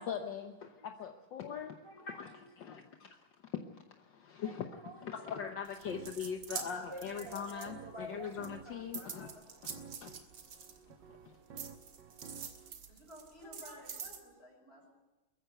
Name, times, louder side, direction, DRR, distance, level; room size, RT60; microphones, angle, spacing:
voice 1, 0.0-3.2 3.5-4.7 5.0-9.3 10.0-10.2 11.1-11.4, left 7 dB, 65° left, 5 dB, 1.7 m, -41 dB
voice 2, 1.8-2.5 4.4-5.1 6.5-9.8 11.0-11.1 12.6-12.9 13.4-14.0, right 1 dB, 15° right, 2 dB, 1.2 m, -51 dB
sound 1, 5.0-12.7, right 6 dB, 60° right, 1.7 m, -54 dB
sound 2, 5.6-8.1 8.4-11.1 11.6-14.2, right 6 dB, 85° right, 2.6 m, -45 dB
voice 3, 12.9-14.9, left 1 dB, 30° left, 2 dB, 5.6 m, -54 dB
23.0 x 14.0 x 8.0 m, 1.2 s
omnidirectional pair, 2.3 m